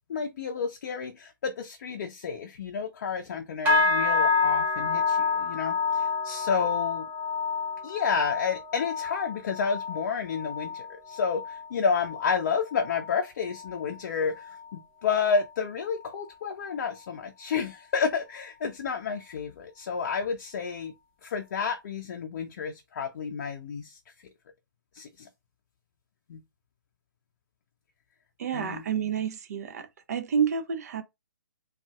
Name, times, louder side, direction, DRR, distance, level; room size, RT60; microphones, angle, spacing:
voice 1, 0.1-7.1 7.8-20.9 21.2-24.0 24.9-25.3 26.3-26.4 28.5-28.8, left 6 dB, 40° left, 0.5 m, -30 dB
sound 1, 3.7-13.2 13.5-13.9 14.3-14.7 15.2-15.3, left 4 dB, 15° right, 0.8 m, -28 dB
voice 2, 28.4-31.0, right 7 dB, 45° right, 0.5 m, -29 dB
3.8 x 2.3 x 2.2 m
figure-of-eight pair, 140°, 12 cm